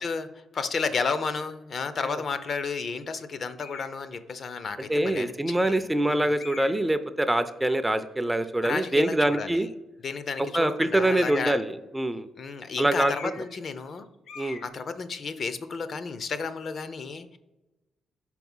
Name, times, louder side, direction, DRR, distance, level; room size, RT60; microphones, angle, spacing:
voice 1, 0.0-6.3 8.6-9.7 10.0-11.6 12.4-14.1 14.4-17.4, left 5 dB, 50° left, 12 dB, 0.5 m, -32 dB
sound 1, 3.6-4.0 4.8-4.9 6.4-6.9 11.1-11.6 13.0-13.6 13.8-14.0 14.3-14.7, left 5 dB, 70° left, 1.0 m, -42 dB
voice 2, 4.9-9.7 10.5-12.3 12.8-13.3 14.4-14.6, right 1 dB, 10° right, 11 dB, 0.4 m, -25 dB
5.6 x 4.7 x 5.4 m, 1.0 s
cardioid pair, 90°, 0 cm